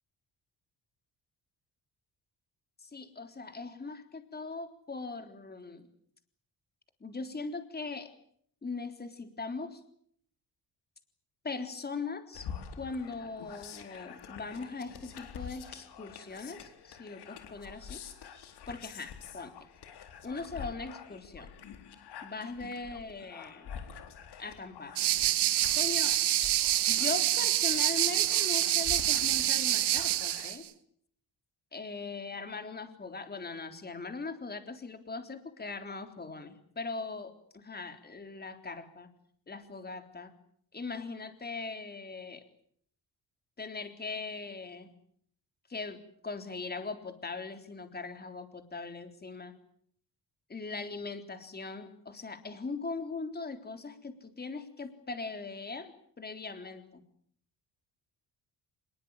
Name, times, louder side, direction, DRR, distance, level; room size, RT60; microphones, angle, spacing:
voice 1, 2.8-5.9 7.0-8.1 8.6-9.8 11.4-12.5 12.8-18.0 18.7-19.5 20.2-21.5 22.2-23.7 24.4-25.0 25.7-26.2 26.9-30.6 31.7-39.1 39.5-40.3 40.7-42.4 43.6-44.9 45.7-49.5 50.5-57.0, left 4 dB, 25° left, 7 dB, 3.7 m, -40 dB
sound 1, 12.3-30.5, left 7 dB, 75° left, 4.1 m, -47 dB
sound 2, 25.0-30.6, right 13 dB, 80° right, 1.6 m, -27 dB
26.0 x 22.0 x 9.0 m, 0.65 s
cardioid pair, 120°, 40 cm